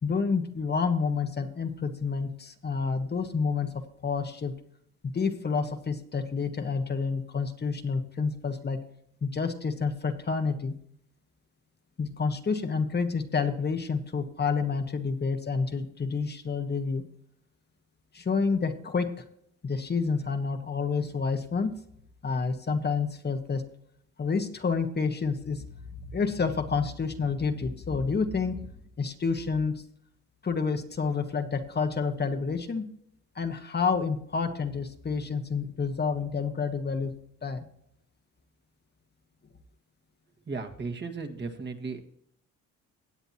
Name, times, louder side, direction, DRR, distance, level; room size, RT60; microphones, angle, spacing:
voice 1, 0.0-4.5 5.0-8.8 9.2-10.7 12.0-17.0 18.1-19.2 19.6-21.7 22.2-23.6 24.2-25.6 26.1-28.7 29.0-29.8 30.4-32.8 33.3-37.1 37.4-37.6, left 5 dB, 35° left, 6 dB, 1.3 m, -29 dB
voice 2, 40.5-42.0, right 4 dB, 35° right, 4 dB, 1.7 m, -35 dB
17.0 x 9.0 x 2.9 m, 0.69 s
cardioid pair, 90°, 30 cm